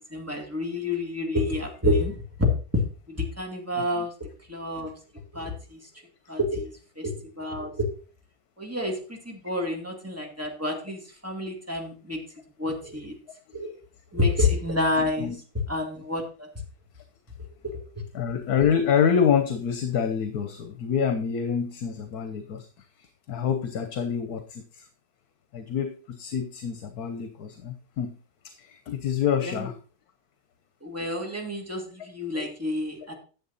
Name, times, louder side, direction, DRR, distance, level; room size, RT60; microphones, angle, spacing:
voice 1, 0.1-4.9 5.3-5.8 6.3-7.9 8.6-12.2 12.6-13.1 13.5-13.8 14.1-15.3 15.7-16.5 29.4-29.7 30.8-33.1, left 2 dB, 10° right, 2.2 m, -29 dB
voice 2, 3.7-4.1 13.5-13.6 15.0-15.4 18.1-22.7 23.0-24.9 25.5-28.1 28.4-29.8, left 7 dB, 75° left, 1.5 m, -27 dB
10.5 x 7.4 x 4.0 m
omnidirectional pair, 1.6 m